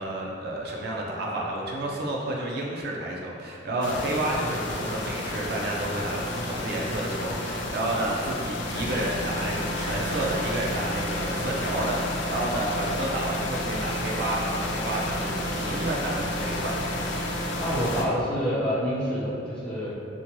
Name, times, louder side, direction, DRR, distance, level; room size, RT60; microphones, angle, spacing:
voice 1, 0.0-16.8, right 1 dB, 55° right, -2 dB, 0.4 m, -30 dB
sound 1, 3.8-18.0, left 1 dB, 70° left, 0.3 m, -31 dB
voice 2, 17.6-19.9, equal, 5° left, -10 dB, 0.4 m, -27 dB
2.7 x 2.2 x 2.9 m, 2.5 s
head